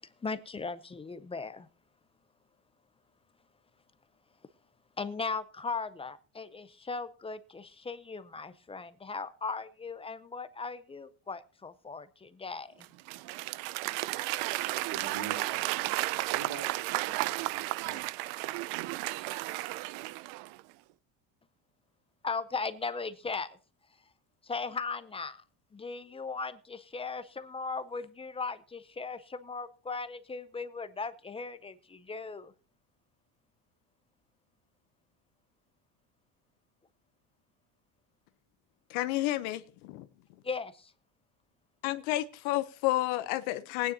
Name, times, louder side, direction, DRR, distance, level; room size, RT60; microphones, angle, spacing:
voice 1, 0.0-1.7 5.0-12.9 22.2-23.6 24.4-25.4 25.7-32.5 40.4-40.9, left 4 dB, 15° left, 0.4 m, -38 dB
Applause / Crowd, 12.8-20.6, right 19 dB, 85° right, 0.6 m, -33 dB
voice 2, 14.8-18.0, right 6 dB, 65° right, 3.8 m, -45 dB
voice 3, 38.9-40.1 41.8-43.9, left 16 dB, 85° left, 0.8 m, -31 dB
19.5 x 9.6 x 2.7 m
cardioid pair, 145°, 46 cm